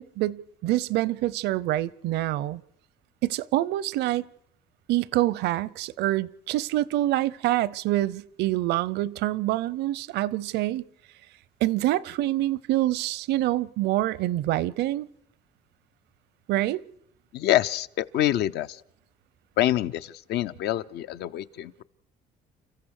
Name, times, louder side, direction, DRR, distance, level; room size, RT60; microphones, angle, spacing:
voice 1, 0.0-2.6 3.2-4.2 4.9-10.8 11.6-15.1 16.5-16.8, right 15 dB, 80° right, 0.7 m, -26 dB
voice 2, 17.3-18.8 19.6-21.8, left 13 dB, 75° left, 0.7 m, -26 dB
30.0 x 14.5 x 6.5 m
cardioid pair, 110°, 17 cm